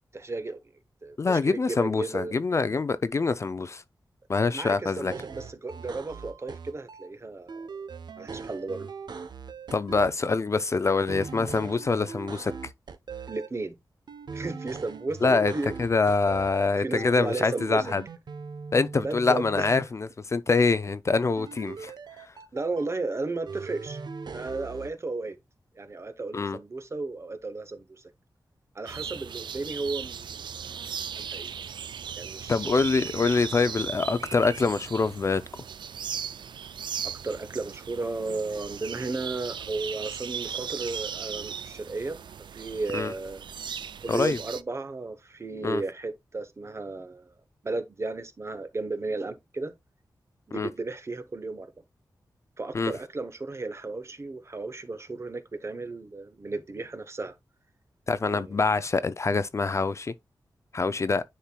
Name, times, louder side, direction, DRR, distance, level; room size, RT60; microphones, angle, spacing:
voice 1, 0.1-0.6 1.0-2.3 4.5-7.7 8.2-8.9 13.3-13.8 14.3-15.7 16.8-17.9 19.0-19.8 22.5-24.0 24.3-25.4 25.8-28.0 28.7-30.7 31.2-31.5 32.1-32.9 37.0-42.2 42.6-43.4 44.0-47.3 47.6-49.7 50.5-51.7 52.6-57.3 58.3-58.6, right 3 dB, 35° right, 0.9 m, -34 dB
voice 2, 1.2-3.8 4.3-5.1 9.7-12.5 15.2-15.5 15.8-18.0 18.7-21.9 26.3-26.6 32.5-35.4 42.9-43.1 44.1-44.4 45.6-45.8 50.5-50.7 52.7-52.9 58.1-60.1 60.7-61.2, left 4 dB, 40° left, 0.4 m, -25 dB
sound 1, 5.1-7.1 7.5-10.1 10.9-13.5 14.1-16.7 17.0-19.9 21.4-22.9 23.5-24.9, right 5 dB, 70° right, 0.8 m, -40 dB
sound 2, 28.9-44.6, right 7 dB, 90° right, 0.4 m, -37 dB
10.0 x 4.4 x 2.3 m
wide cardioid pair, 130°, 8 cm